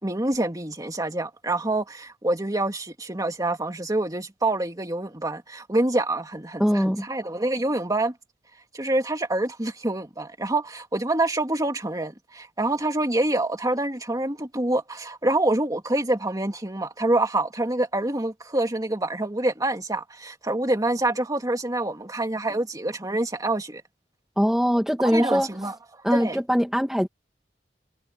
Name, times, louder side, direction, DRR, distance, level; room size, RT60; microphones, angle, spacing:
voice 1, 0.0-8.1 8.7-23.8 25.0-26.4, right 2 dB, 20° right, 2.4 m, -26 dB
voice 2, 6.6-7.1 24.4-25.5 26.0-27.1, equal, ahead, 1.5 m, -22 dB
head